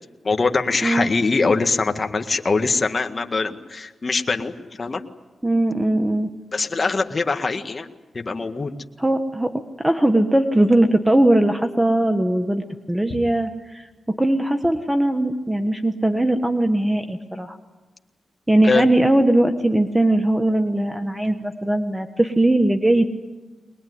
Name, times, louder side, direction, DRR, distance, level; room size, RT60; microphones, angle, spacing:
voice 1, 0.2-5.0 6.5-7.9 8.1-8.7 13.1-13.2 18.6-18.8, left 4 dB, 45° left, 6 dB, 1.8 m, -23 dB
voice 2, 5.4-6.3 9.0-9.5 9.8-13.9 14.2-17.6 18.5-23.1, right 1 dB, 10° right, 6 dB, 1.5 m, -19 dB
22.0 x 21.0 x 9.7 m, 1.2 s
cardioid pair, 65°, 0 cm